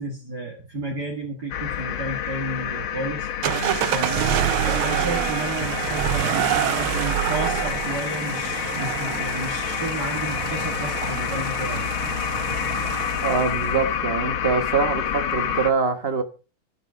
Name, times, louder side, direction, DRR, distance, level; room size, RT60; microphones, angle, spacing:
voice 1, 0.0-3.6 3.9-11.9, right 2 dB, 55° right, 0 dB, 2.2 m, -32 dB
sound 1, 1.5-15.7, left 9 dB, 80° left, 1.7 m, -28 dB
sound 2, 3.4-13.7, right 12 dB, 85° right, 1.6 m, -27 dB
voice 2, 13.2-16.2, right 5 dB, 35° right, 8 dB, 1.2 m, -24 dB
12.0 x 7.6 x 5.0 m, 0.34 s
omnidirectional pair, 2.3 m